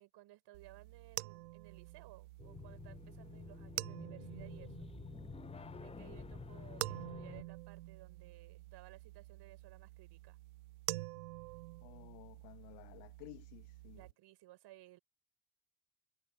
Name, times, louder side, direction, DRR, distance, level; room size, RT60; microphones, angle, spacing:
voice 1, 0.0-4.9 5.8-10.4 13.9-15.0, right 16 dB, 60° right, 5.8 m, -59 dB
sound 1, 0.5-14.1, right 20 dB, 75° right, 0.7 m, -48 dB
sound 2, 2.4-7.4, left 5 dB, 15° left, 0.5 m, -50 dB
voice 2, 11.8-14.1, left 34 dB, 65° left, 1.3 m, -55 dB
figure-of-eight pair, 50°, 46 cm